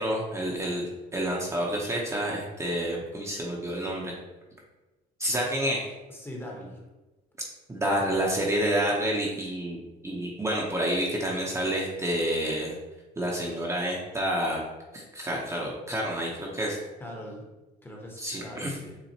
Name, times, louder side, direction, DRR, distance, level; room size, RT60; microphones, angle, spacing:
voice 1, 0.0-4.1 5.2-5.9 7.7-9.8 10.0-12.7 13.2-14.6 14.9-16.8 18.2-18.7, equal, 15° right, -2 dB, 0.8 m, -29 dB
voice 2, 6.1-6.8 17.0-17.5 17.8-19.0, left 1 dB, 15° left, -1 dB, 1.0 m, -41 dB
7.0 x 2.5 x 2.9 m, 1.1 s
cardioid pair, 110°, 17 cm